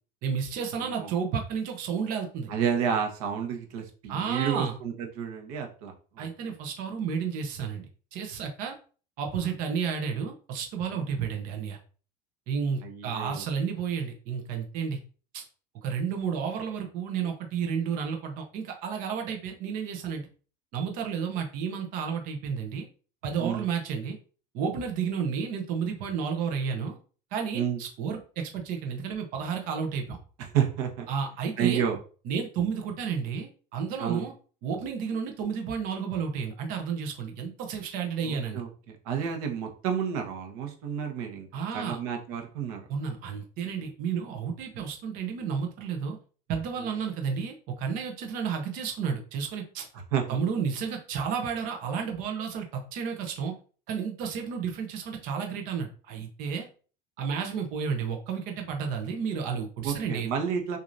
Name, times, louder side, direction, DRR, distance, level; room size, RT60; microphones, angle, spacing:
voice 1, 0.2-2.5 4.1-4.8 6.2-7.9 8.1-8.7 9.2-11.8 12.5-15.0 15.3-15.4 15.8-20.3 20.7-22.9 23.2-24.2 24.5-27.0 27.3-30.2 31.1-31.8 32.3-34.3 34.6-38.6 41.5-42.0 42.9-46.2 46.5-49.9 50.3-53.5 53.9-56.7 57.2-60.3, right 6 dB, 50° right, 3 dB, 0.8 m, -31 dB
voice 2, 2.5-6.3 10.9-11.1 12.8-13.4 23.4-23.6 27.5-27.8 30.5-31.1 31.6-32.0 34.0-34.2 38.2-38.7 39.0-41.5 41.7-42.9 46.8-46.9 50.1-50.4 59.8-60.8, right 8 dB, 75° right, 3 dB, 1.2 m, -30 dB
6.2 x 2.8 x 2.7 m, 0.39 s
cardioid pair, 165°, 19 cm